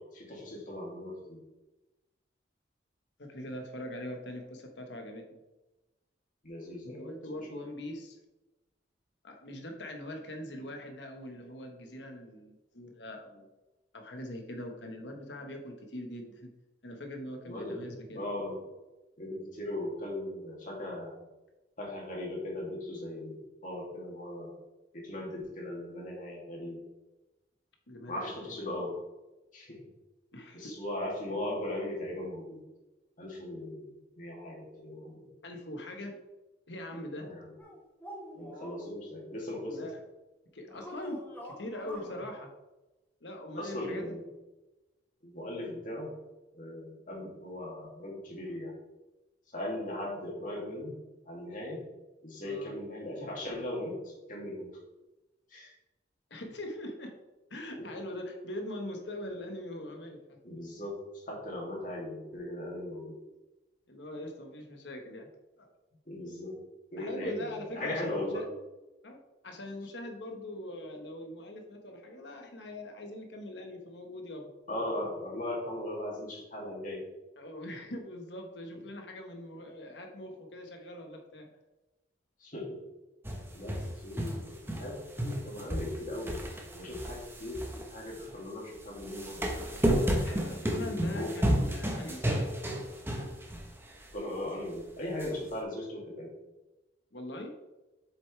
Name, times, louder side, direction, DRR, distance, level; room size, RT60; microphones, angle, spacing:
voice 1, 0.1-1.4 6.4-7.4 17.5-17.8 18.1-18.6 19.2-21.2 21.8-24.5 24.9-26.8 28.1-29.0 29.5-29.8 30.5-32.6 33.2-35.3 37.1-37.5 38.3-39.8 42.0-42.2 43.6-44.2 45.2-46.1 46.5-48.7 49.5-50.9 51.3-51.8 52.2-54.7 55.5-55.7 60.4-63.2 66.1-66.6 66.9-68.4 74.7-77.0 82.4-82.8 83.5-85.0 85.2-86.4 86.7-89.5 90.8-91.3 94.1-96.3, left 1 dB, 50° left, -3 dB, 2.9 m, -38 dB
voice 2, 3.2-5.4 6.8-8.2 9.2-13.5 13.9-16.5 16.8-18.2 27.9-28.6 30.3-30.7 35.4-36.2 36.7-37.3 39.7-40.0 40.5-42.5 43.2-44.2 52.4-52.7 56.3-57.1 57.5-60.4 63.9-65.3 65.6-65.7 67.0-68.4 69.0-69.2 69.4-74.5 77.4-81.5 90.2-92.5 97.1-97.5, left 1 dB, 75° left, 3 dB, 1.6 m, -42 dB
sound 1, 37.6-38.9 40.7-42.1, equal, 10° left, 2.8 m, -46 dB
sound 2, 83.2-84.9 85.2-88.3 89.0-93.7 94.0-94.1 95.2-95.3, equal, 15° right, 1.2 m, -31 dB
8.1 x 7.1 x 3.4 m, 1.1 s
head